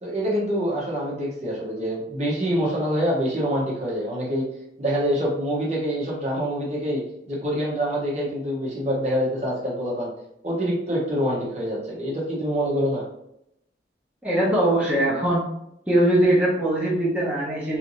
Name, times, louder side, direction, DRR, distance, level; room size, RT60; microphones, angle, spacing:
voice 1, 0.0-4.4 4.8-10.1 10.4-13.0, equal, 35° right, -5 dB, 1.0 m, -26 dB
voice 2, 14.2-15.5 15.9-17.8, right 1 dB, 5° right, -7 dB, 1.0 m, -21 dB
3.3 x 2.7 x 3.1 m, 0.78 s
head